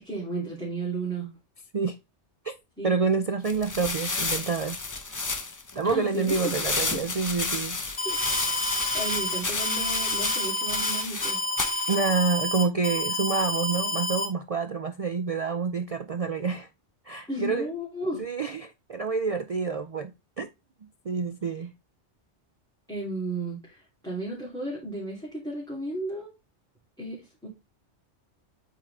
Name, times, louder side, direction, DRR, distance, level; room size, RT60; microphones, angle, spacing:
voice 1, 0.0-1.3 2.8-2.9 5.8-6.5 8.0-8.2 8.9-11.4 17.3-18.3 21.6-21.7 22.9-26.3 27.0-27.5, right 2 dB, 5° left, 2.6 m, -34 dB
voice 2, 2.8-4.8 5.8-7.8 11.9-16.7 17.1-17.7 18.2-20.5 21.0-21.7, right 5 dB, 70° right, 0.3 m, -28 dB
sound 1, 3.5-12.0, left 3 dB, 25° left, 0.4 m, -31 dB
Alarm, 8.0-14.3, left 1 dB, 50° left, 1.6 m, -29 dB
8.4 x 3.8 x 3.2 m
omnidirectional pair, 1.2 m